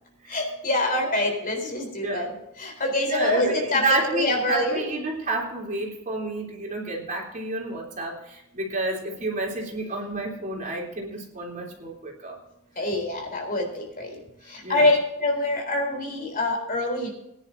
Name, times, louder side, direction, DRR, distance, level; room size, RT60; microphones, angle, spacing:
voice 1, 0.3-2.3 2.6-3.8 4.1-4.9 12.8-14.2 14.5-17.1, left 2 dB, 40° left, 3 dB, 3.8 m, -25 dB
voice 2, 2.0-2.4 3.1-12.4 14.6-14.9, right 2 dB, 40° right, -1 dB, 3.4 m, -29 dB
21.5 x 10.5 x 2.7 m, 0.85 s
head